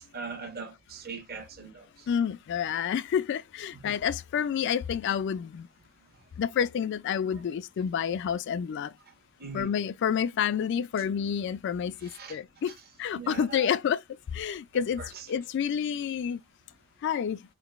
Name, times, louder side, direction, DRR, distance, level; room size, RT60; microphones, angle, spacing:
voice 1, 0.1-2.1 3.7-3.9 7.3-7.4 9.4-9.7 12.0-12.4 12.7-12.9 13.1-13.8 14.7-15.3, right 5 dB, 50° right, 1.1 m, -41 dB
voice 2, 2.1-5.7 6.4-8.9 9.5-12.7 13.0-14.0 14.3-15.0 15.3-16.4 17.0-17.4, left 8 dB, 60° left, 0.3 m, -29 dB
4.0 x 3.6 x 2.4 m
head